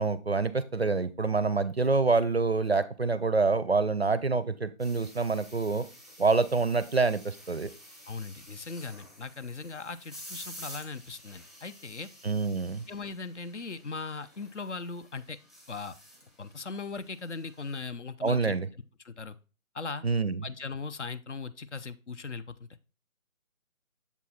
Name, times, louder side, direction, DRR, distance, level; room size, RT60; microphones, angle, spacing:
voice 1, 0.0-5.9 6.2-7.7 12.2-12.8 18.2-18.7 20.0-20.5, right 4 dB, 50° right, 15 dB, 0.5 m, -26 dB
sound 1, 4.8-17.9, equal, 10° left, 0.9 m, -51 dB
voice 2, 8.1-12.1 12.9-15.4 15.7-16.0 16.4-18.6 19.0-19.4 19.7-20.0 20.4-22.5, left 4 dB, 60° left, 12 dB, 0.6 m, -39 dB
7.2 x 3.8 x 4.2 m, 0.33 s
figure-of-eight pair, 155°, 42 cm